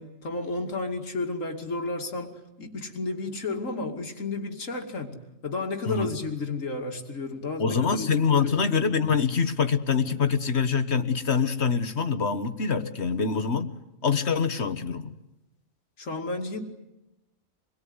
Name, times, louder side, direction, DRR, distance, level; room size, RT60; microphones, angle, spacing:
voice 1, 0.0-8.9 16.0-16.6, left 3 dB, 75° left, 4 dB, 2.9 m, -32 dB
voice 2, 7.6-13.7 14.0-15.1, left 5 dB, 55° left, 10 dB, 1.7 m, -25 dB
26.5 x 22.5 x 9.7 m, 0.92 s
omnidirectional pair, 1.4 m